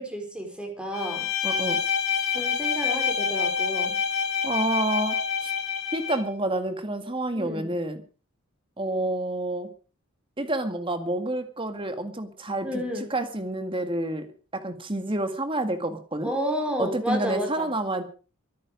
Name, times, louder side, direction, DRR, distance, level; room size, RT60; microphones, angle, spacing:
voice 1, 0.0-1.3 2.3-4.0 7.3-7.7 12.6-13.1 16.2-17.7, equal, 5° right, 2 dB, 5.1 m, -31 dB
Bowed string instrument, 0.9-6.3, left 7 dB, 60° left, 3.9 m, -27 dB
voice 2, 1.4-1.8 4.4-5.5 5.9-8.0 8.8-9.7 10.4-14.3 14.5-16.3 16.8-18.0, right 1 dB, 25° right, 8 dB, 2.0 m, -29 dB
24.0 x 9.8 x 5.2 m, 0.37 s
head